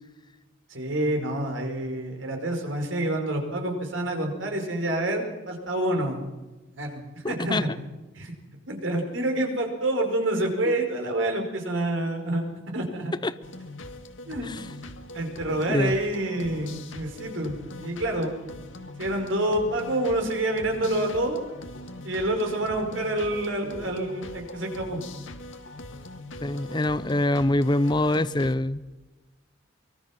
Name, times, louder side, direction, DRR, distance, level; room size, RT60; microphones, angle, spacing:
voice 1, 0.7-6.3 6.7-7.7 8.2-8.3 8.7-12.4 12.7-13.1 14.3-14.5 15.1-18.4 19.0-21.4 22.0-25.0, right 1 dB, 75° right, 3 dB, 5.2 m, -27 dB
voice 2, 7.2-7.6 10.7-10.8 13.2-13.3 14.4-14.6 15.7-15.9 26.4-28.8, left 1 dB, 20° left, 13 dB, 0.7 m, -24 dB
sound 1, 13.4-28.5, left 2 dB, 75° left, 1.8 m, -41 dB
24.5 x 21.5 x 6.0 m, 1.1 s
head